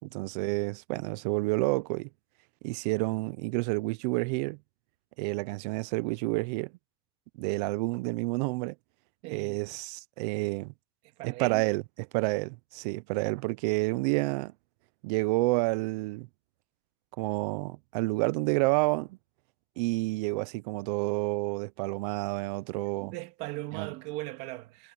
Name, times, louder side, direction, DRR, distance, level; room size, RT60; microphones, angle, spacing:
voice 1, 0.0-2.1 2.6-4.6 5.2-6.7 7.4-8.7 9.3-10.7 11.2-11.8 12.1-14.5 15.0-16.3 17.2-19.2 19.8-23.1 23.7-23.9, right 24 dB, 75° right, 0.6 m, -29 dB
voice 2, 9.2-9.6 11.0-11.7 23.0-24.9, right 19 dB, 55° right, 2.2 m, -39 dB
cardioid pair, 180°, 21 cm